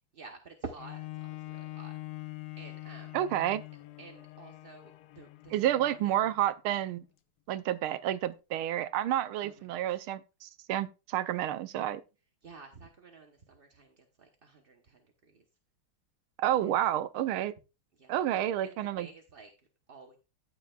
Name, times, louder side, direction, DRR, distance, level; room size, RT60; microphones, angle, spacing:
voice 1, 0.1-1.9 2.6-3.2 4.0-6.2 9.4-10.0 12.4-15.4 16.6-16.7 18.0-18.2 18.6-19.5 19.9-20.2, right 4 dB, 40° right, 0.8 m, -50 dB
Bowed string instrument, 0.8-6.4 7.0-7.1, left 19 dB, 90° left, 0.8 m, -44 dB
voice 2, 3.1-3.6 5.5-7.0 7.5-12.0 16.4-17.5 18.1-19.1, right 12 dB, 80° right, 1.5 m, -30 dB
13.5 x 8.7 x 2.4 m
omnidirectional pair, 2.4 m